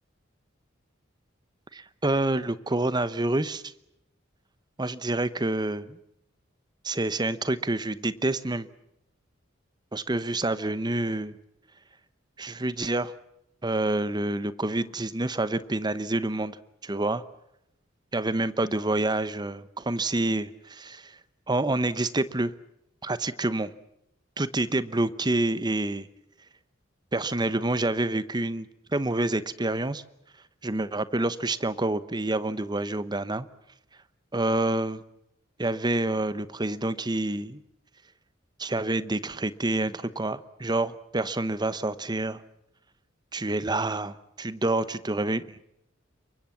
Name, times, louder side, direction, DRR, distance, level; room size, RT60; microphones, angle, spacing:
voice 1, 1.7-3.6 4.8-6.0 6.8-8.7 9.9-11.4 12.4-13.1 13.6-16.6 16.8-17.2 18.1-21.2 21.5-22.5 23.0-23.7 24.4-26.1 27.1-28.7 28.9-30.0 30.6-33.5 34.3-35.0 35.6-37.6 38.6-42.4 43.3-45.6, right 2 dB, 20° right, 15 dB, 0.9 m, -27 dB
28.0 x 23.5 x 7.3 m, 0.80 s
head